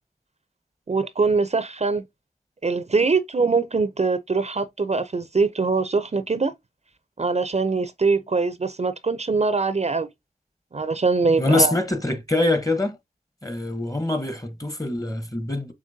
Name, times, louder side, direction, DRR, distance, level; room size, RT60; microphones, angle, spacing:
voice 1, 0.9-2.0 2.6-6.5 7.2-10.1 10.7-11.8, right 4 dB, 45° right, 0.5 m, -23 dB
voice 2, 11.4-13.0 13.4-15.7, left 2 dB, 20° left, 0.9 m, -24 dB
6.6 x 3.0 x 2.6 m
cardioid pair, 45°, 16 cm